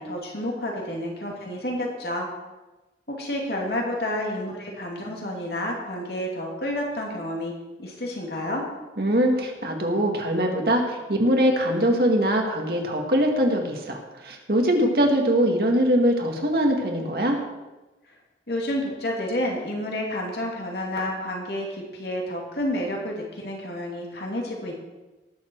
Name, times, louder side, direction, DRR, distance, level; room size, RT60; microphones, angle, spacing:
voice 1, 0.0-2.3 3.1-7.5 7.8-8.6 18.5-24.7, left 1 dB, 65° left, -1 dB, 2.7 m, -30 dB
voice 2, 9.0-17.4, equal, 60° right, 2 dB, 2.0 m, -22 dB
19.0 x 7.4 x 4.7 m, 1.1 s
head